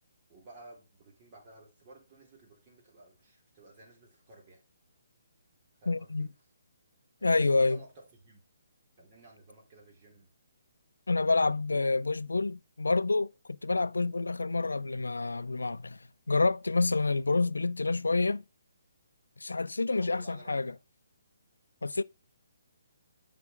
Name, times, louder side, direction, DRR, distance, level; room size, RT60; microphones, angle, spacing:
voice 1, 0.3-4.6 5.8-6.3 7.2-8.4 9.0-10.3 19.8-20.8, right 2 dB, 30° right, 3.8 m, -54 dB
voice 2, 5.9-6.3 7.2-7.8 11.1-16.0 16.3-18.4 19.4-20.7 21.8-22.0, left 3 dB, 90° left, 0.4 m, -28 dB
8.4 x 5.9 x 4.7 m
hypercardioid pair, 150°, 0 cm